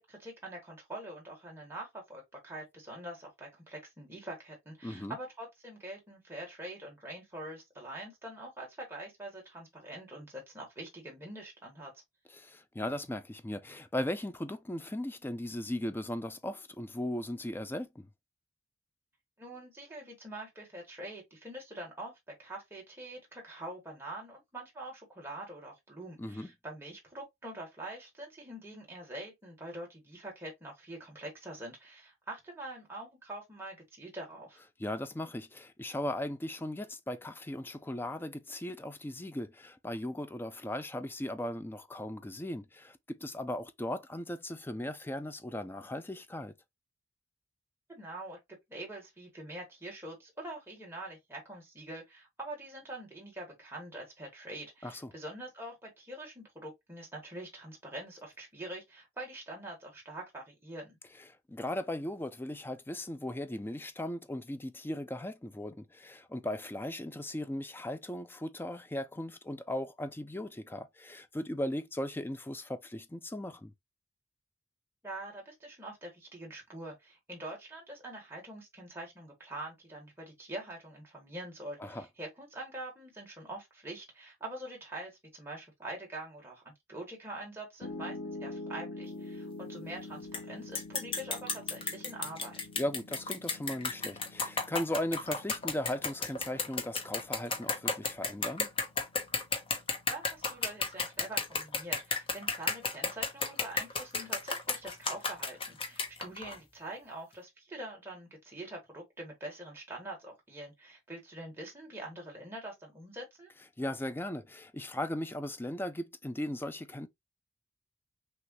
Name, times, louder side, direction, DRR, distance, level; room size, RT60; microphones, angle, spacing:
voice 1, 0.1-11.9 19.4-34.6 47.9-48.4 48.7-61.0 75.0-92.6 100.1-113.5, right 1 dB, 15° right, 1.8 m, -44 dB
voice 2, 4.8-5.2 12.3-18.1 26.2-26.5 34.8-46.5 54.8-55.1 61.5-73.7 81.8-82.1 92.8-98.7 113.8-117.1, left 1 dB, 10° left, 0.4 m, -37 dB
Piano, 87.8-100.0, left 2 dB, 75° left, 1.0 m, -46 dB
sound 1, 90.3-90.4 90.8-106.6, left 4 dB, 30° left, 0.9 m, -33 dB
6.1 x 2.5 x 3.0 m
head